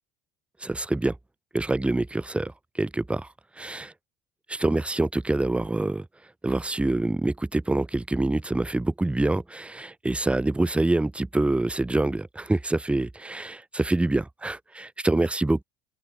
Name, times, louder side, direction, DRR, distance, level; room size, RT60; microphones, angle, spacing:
voice 1, 0.6-1.2 1.5-3.3 3.6-3.9 4.5-6.1 6.4-15.6, right 2 dB, 5° right, 0.4 m, -26 dB
open air
hypercardioid pair, 65°, 20 cm